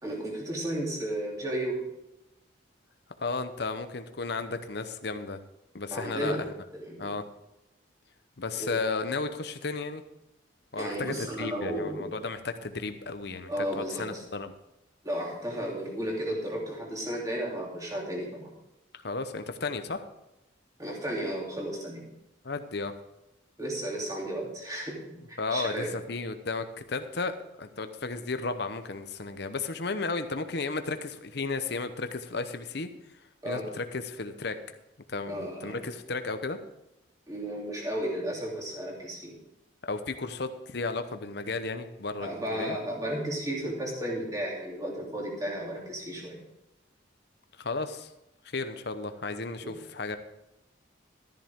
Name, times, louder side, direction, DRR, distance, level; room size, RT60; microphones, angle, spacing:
voice 1, 0.0-1.8 5.9-6.4 6.7-7.1 8.6-8.8 10.8-12.1 13.5-14.2 15.0-18.5 20.8-22.1 23.6-25.9 33.4-33.7 35.3-35.8 37.3-39.3 42.2-46.4 49.6-49.8, right 1 dB, 20° right, -2 dB, 2.9 m, -33 dB
voice 2, 3.2-5.4 5.7-6.5 7.0-7.2 8.4-10.0 10.7-14.5 18.9-20.0 22.4-22.9 25.4-32.9 33.5-34.6 35.1-36.6 39.8-42.8 47.6-48.1 48.4-50.2, left 3 dB, 55° left, 9 dB, 0.9 m, -34 dB
13.5 x 10.5 x 3.6 m, 0.90 s
head